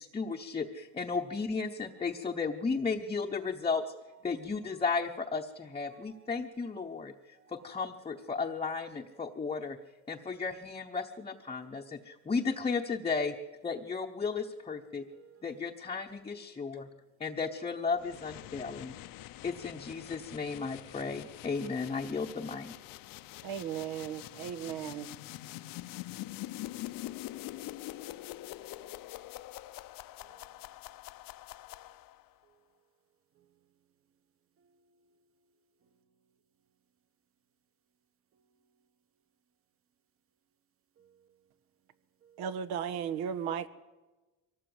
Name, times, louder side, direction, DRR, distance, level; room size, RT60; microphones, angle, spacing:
voice 1, 0.0-3.8 4.2-9.8 10.1-13.3 13.6-15.1 15.4-16.8 17.2-18.9 19.4-22.7, left 4 dB, 15° left, 0.9 m, -34 dB
voice 2, 0.5-1.1 1.4-1.5 1.8-2.2 4.0-4.4 4.7-5.5 5.9-6.9 7.2-8.8 9.0-9.6 11.0-11.6 14.2-19.6 27.3-27.4 28.7-29.0 30.2-30.7 31.7-32.0 32.4-32.6 33.3-33.6 34.6-35.2 35.8-36.0 38.3-38.7 41.0-41.4 42.2-42.6, right 8 dB, 35° right, 1.2 m, -66 dB
sound 1, 18.0-32.3, left 16 dB, 60° left, 0.8 m, -45 dB
voice 3, 23.4-25.1 42.4-43.7, right 8 dB, 75° right, 1.5 m, -36 dB
24.0 x 18.0 x 7.9 m
cardioid pair, 145°, 38 cm